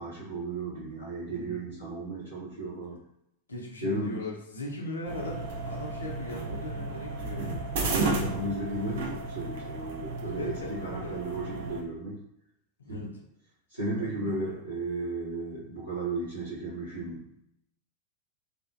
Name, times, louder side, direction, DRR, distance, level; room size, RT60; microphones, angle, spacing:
voice 1, 0.0-3.0 3.8-4.2 7.7-12.2 12.9-13.1 13.7-17.2, right 2 dB, 90° right, -13 dB, 0.8 m, -34 dB
voice 2, 1.3-1.6 3.5-7.7 10.4-11.1 12.8-13.1 13.9-14.6, left 2 dB, 75° left, -1 dB, 0.6 m, -39 dB
sound 1, 5.0-11.8, right 3 dB, 55° right, 0.4 m, -33 dB
2.5 x 2.0 x 2.5 m, 0.77 s
figure-of-eight pair, 90°, 0 cm